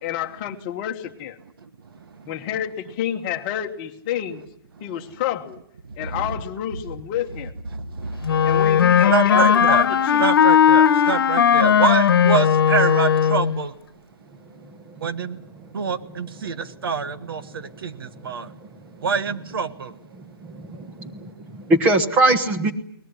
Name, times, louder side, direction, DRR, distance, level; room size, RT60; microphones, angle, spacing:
voice 1, 0.0-1.4 2.3-4.4 4.8-5.6 6.0-7.5 8.4-10.2, left 11 dB, 25° left, 5 dB, 1.4 m, -29 dB
voice 2, 5.9-6.4 7.7-8.6 9.1-9.9 10.2-13.7 15.0-15.4 15.7-18.5 19.0-19.9, right 6 dB, 70° right, 12 dB, 1.5 m, -26 dB
Wind instrument woodwind instrument, 8.3-13.6, left 8 dB, 70° left, 1.3 m, -17 dB
voice 3, 20.5-21.2 21.5-22.7, right 2 dB, 10° right, 8 dB, 1.2 m, -21 dB
22.0 x 19.5 x 9.9 m, 0.70 s
hypercardioid pair, 170°, 13 cm